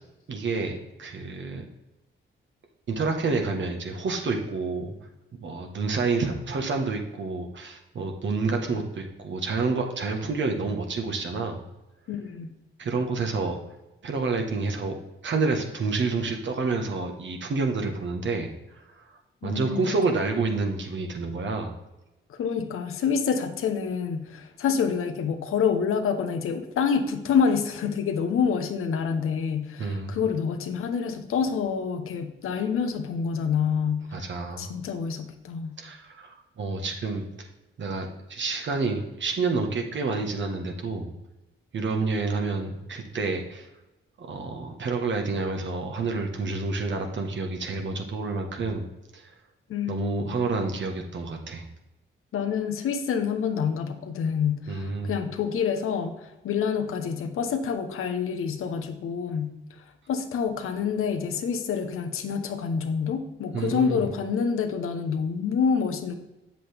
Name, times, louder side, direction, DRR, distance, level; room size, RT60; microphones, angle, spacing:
voice 1, 0.3-1.6 2.9-4.9 5.4-11.6 12.8-13.6 14.0-14.9 15.2-18.5 18.9-19.0 19.4-21.7 29.8-30.2 34.1-34.7 35.8-37.5 37.8-41.1 41.7-43.7 44.2-48.9 49.1-49.2 49.9-51.6 54.7-55.1 63.5-64.0, right 3 dB, 60° right, 3 dB, 1.4 m, -29 dB
voice 2, 12.1-12.5 19.4-19.8 22.3-34.3 34.6-35.8 49.7-50.4 52.3-59.5 60.1-66.1, left 6 dB, 80° left, 6 dB, 0.9 m, -27 dB
7.8 x 7.4 x 3.5 m, 0.98 s
cardioid pair, 75°, 21 cm